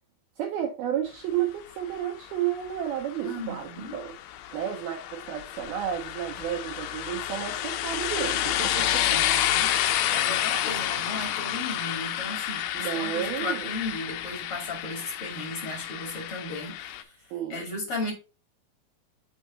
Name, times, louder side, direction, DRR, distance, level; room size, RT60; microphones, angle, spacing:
voice 1, 0.4-4.1 4.5-9.2 12.7-13.7 17.3-17.7, right 10 dB, 80° right, 2.2 m, -32 dB
sound 1, 2.0-17.0, left 12 dB, 80° left, 2.7 m, -30 dB
voice 2, 3.2-4.0 9.0-9.7 10.1-18.1, left 2 dB, 35° left, 2.7 m, -36 dB
6.4 x 4.7 x 3.9 m
omnidirectional pair, 5.4 m